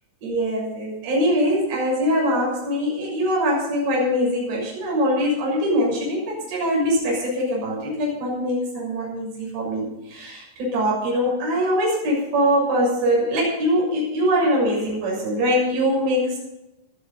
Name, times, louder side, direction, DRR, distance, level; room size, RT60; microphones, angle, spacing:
voice 1, 0.2-16.4, equal, 55° right, -4 dB, 8.9 m, -22 dB
20.0 x 13.0 x 4.1 m, 0.93 s
omnidirectional pair, 5.7 m